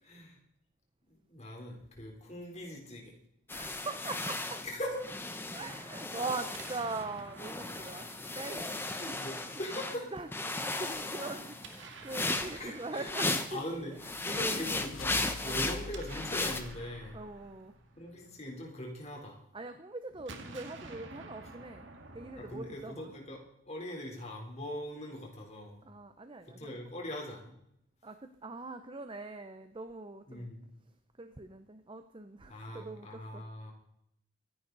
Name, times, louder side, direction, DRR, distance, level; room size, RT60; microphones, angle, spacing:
voice 1, 0.0-0.4 1.1-3.1 4.6-5.0 8.8-10.1 12.5-17.2 18.0-19.4 22.4-25.8 26.5-27.5 30.3-30.7 32.5-33.7, left 1 dB, 30° left, 0 dB, 3.7 m, -41 dB
sound 1, 3.5-7.1 7.4-10.0 10.3-13.6 14.0-16.6, left 2 dB, 10° left, 1.0 m, -36 dB
voice 2, 3.5-4.6 5.5-8.1 8.3-9.6 10.1-14.0 14.3-14.6 15.4-15.7 17.1-17.7 19.5-21.9 22.1-23.1 25.8-26.8 28.0-30.5 31.2-33.4, right 3 dB, 25° right, 8 dB, 0.7 m, -42 dB
Explosion, 6.4-9.4 11.5-13.7 15.6-19.0 20.1-23.5, right 3 dB, 60° right, 1.8 m, -51 dB
sound 2, 13.7-17.7, left 3 dB, 65° left, 0.7 m, -47 dB
24.0 x 11.0 x 4.0 m, 0.75 s
head